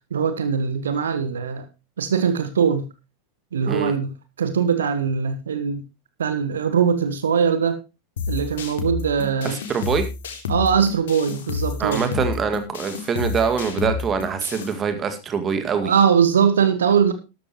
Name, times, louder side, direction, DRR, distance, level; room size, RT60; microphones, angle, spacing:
voice 1, 0.1-1.6 2.0-2.9 3.5-4.1 4.4-5.8 6.2-7.8 8.3-9.6 10.5-12.1 15.8-17.1, right 7 dB, 65° right, 10 dB, 1.5 m, -21 dB
sound 1, 8.2-14.7, left 5 dB, 60° left, 2.4 m, -30 dB
voice 2, 9.4-10.0 11.8-15.9, right 6 dB, 25° right, 8 dB, 2.0 m, -24 dB
13.0 x 13.0 x 3.0 m, 0.27 s
figure-of-eight pair, 90°, 0 cm